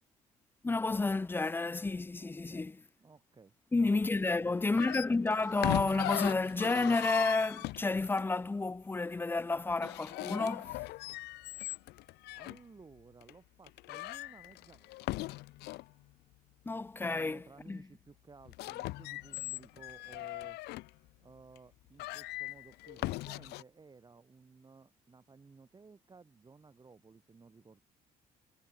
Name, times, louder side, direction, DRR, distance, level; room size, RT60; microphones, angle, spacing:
voice 1, 0.6-2.8 3.7-10.8 16.7-17.8, left 3 dB, 10° left, 0.5 m, -31 dB
voice 2, 2.2-2.7 3.0-4.6 12.3-15.4 17.0-20.6 21.2-27.8, right 4 dB, 25° right, 3.0 m, -57 dB
sound 1, 4.7-8.2 9.7-12.6 13.2-13.3 13.7-15.9 18.4-20.9 21.6-21.7 22.0-23.6, left 19 dB, 80° left, 0.5 m, -39 dB
cardioid pair, 110°, 17 cm